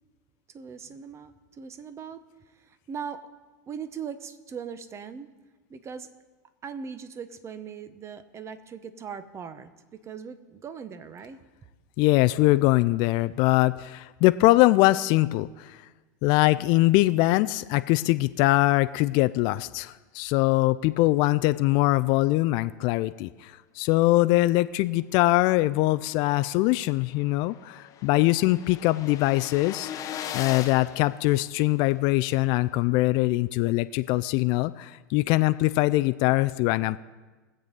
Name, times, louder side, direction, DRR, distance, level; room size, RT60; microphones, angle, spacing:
voice 1, 0.5-3.3 3.7-5.3 5.7-6.1 6.6-11.4, right 6 dB, 30° right, 12 dB, 0.9 m, -40 dB
voice 2, 12.0-15.8 16.2-29.9 30.3-37.0, left 19 dB, 50° left, 13 dB, 0.4 m, -22 dB
sound 1, 26.8-26.9 27.0-31.9, left 10 dB, 35° left, 0.9 m, -39 dB
20.5 x 7.6 x 4.0 m, 1.2 s
hypercardioid pair, 105°, 10 cm